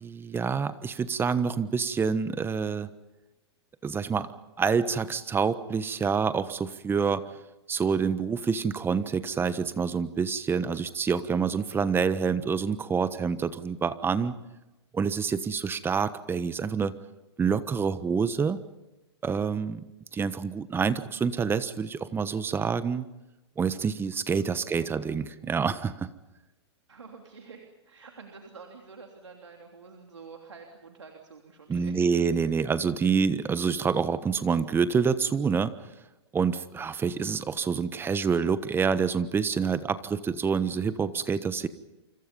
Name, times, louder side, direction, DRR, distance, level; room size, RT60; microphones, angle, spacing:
voice 1, 0.0-2.9 3.8-4.3 4.6-7.2 7.7-14.3 14.9-16.9 17.4-18.6 19.2-19.8 20.1-23.1 23.6-26.1 31.7-35.7 36.3-41.7, right 6 dB, 15° right, 13 dB, 1.2 m, -27 dB
voice 2, 24.3-24.9 26.9-32.1 37.0-37.3, right 5 dB, 90° right, 2 dB, 3.2 m, -48 dB
28.5 x 26.0 x 5.4 m, 0.99 s
hypercardioid pair, 115°, 15 cm